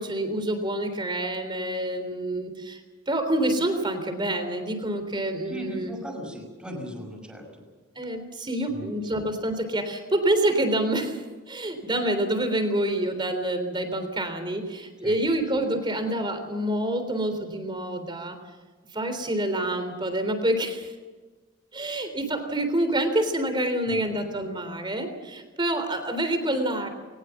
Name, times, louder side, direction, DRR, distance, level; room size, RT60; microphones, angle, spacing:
voice 1, 0.0-2.8 3.1-5.9 8.0-11.2 11.5-18.4 18.9-20.9 21.7-26.9, right 1 dB, 25° right, 8 dB, 3.5 m, -27 dB
voice 2, 5.5-7.6 8.7-8.9 9.1-9.2 15.0-15.2 23.9-24.0, equal, 5° right, 0 dB, 5.6 m, -38 dB
21.5 x 19.5 x 7.3 m, 1.3 s
head